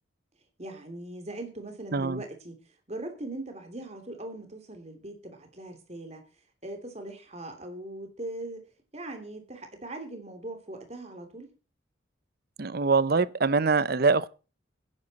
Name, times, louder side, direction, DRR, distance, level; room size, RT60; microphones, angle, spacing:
voice 1, 0.6-2.6 2.9-6.2 6.6-8.7 8.9-11.5, right 1 dB, 35° right, 2.9 m, -40 dB
voice 2, 1.9-2.2 12.6-14.3, right 4 dB, 55° right, 0.7 m, -24 dB
16.0 x 10.5 x 4.2 m
head